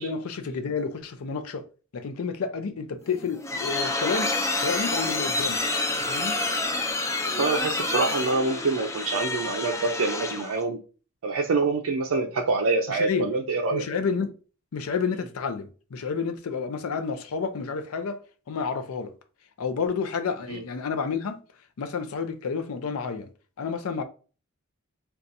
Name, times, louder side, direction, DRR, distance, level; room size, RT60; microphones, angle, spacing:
voice 1, 0.0-1.6 1.9-4.3 4.6-5.6 6.1-6.4 12.9-13.3 13.7-14.3 14.7-18.2 18.5-19.1 19.6-21.4 21.8-23.3 23.6-24.0, left 5 dB, 90° left, 0.5 m, -30 dB
sound 1, 3.1-10.6, left 2 dB, 15° left, 0.3 m, -28 dB
voice 2, 7.3-10.8 11.2-13.8 20.5-20.6, right 3 dB, 75° right, 0.4 m, -26 dB
3.9 x 2.3 x 2.6 m
head